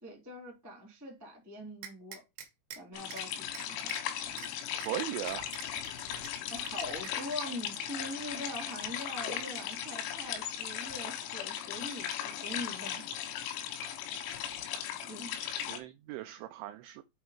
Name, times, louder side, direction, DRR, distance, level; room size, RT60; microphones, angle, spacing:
voice 1, 0.0-2.2 2.7-3.9 6.5-13.0 15.1-15.3, left 1 dB, 15° right, 0.6 m, -43 dB
sound 1, 1.8-2.8 3.1-3.2 3.5-4.0 4.4-4.5 4.8-4.9 5.3-6.3 6.7-7.4, right 9 dB, 70° right, 2.3 m, -45 dB
sound 2, 3.0-15.8, left 10 dB, 90° left, 3.8 m, -37 dB
voice 2, 4.9-5.5 15.7-17.0, right 14 dB, 90° right, 2.6 m, -38 dB
8.0 x 3.0 x 4.9 m
omnidirectional pair, 5.9 m